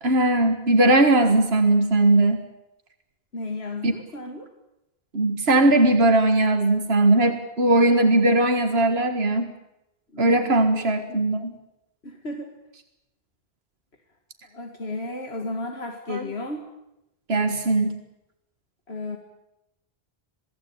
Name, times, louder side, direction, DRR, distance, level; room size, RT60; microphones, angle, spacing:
voice 1, 0.0-2.4 3.8-3.9 5.1-9.5 10.2-11.6 16.1-16.3 17.3-17.9, right 2 dB, 80° right, 6 dB, 2.0 m, -19 dB
voice 2, 3.3-4.5 7.7-8.2 10.1-10.8 12.0-12.5 14.5-16.7 18.9-19.2, left 2 dB, 90° left, 3 dB, 2.4 m, -34 dB
28.0 x 18.5 x 8.9 m, 0.89 s
omnidirectional pair, 1.0 m